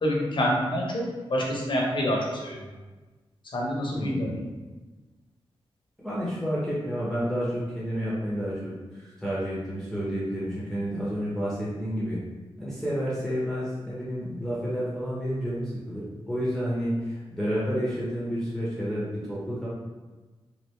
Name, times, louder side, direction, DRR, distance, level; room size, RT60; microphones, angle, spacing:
voice 1, 0.0-2.6 3.5-4.4, equal, 55° left, -2 dB, 0.8 m, -27 dB
voice 2, 3.9-4.4 6.0-12.2 12.6-19.7, equal, 5° left, -8 dB, 0.8 m, -30 dB
3.2 x 2.5 x 3.1 m, 1.2 s
wide cardioid pair, 85°, 10 cm